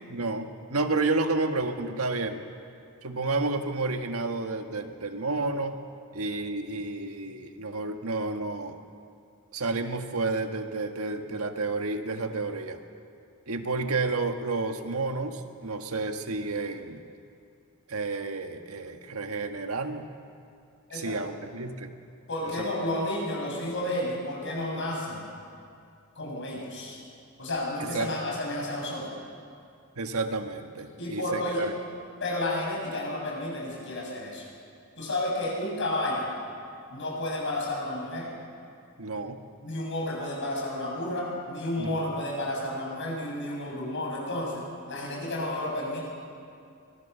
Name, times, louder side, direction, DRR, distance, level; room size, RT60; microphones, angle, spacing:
voice 1, 0.1-2.4 3.0-5.8 6.1-8.8 9.5-12.8 13.5-17.0 17.9-20.0 20.9-21.9 22.4-22.7 27.8-28.1 30.0-31.7 39.0-39.4 41.8-42.0, right 3 dB, 80° right, 6 dB, 1.7 m, -30 dB
voice 2, 22.3-25.3 26.2-27.0 27.4-29.1 31.0-31.7 32.2-34.4 35.0-36.3 36.9-38.3 39.6-46.0, left 1 dB, 60° left, -2 dB, 7.4 m, -31 dB
24.5 x 21.5 x 6.9 m, 2.4 s
head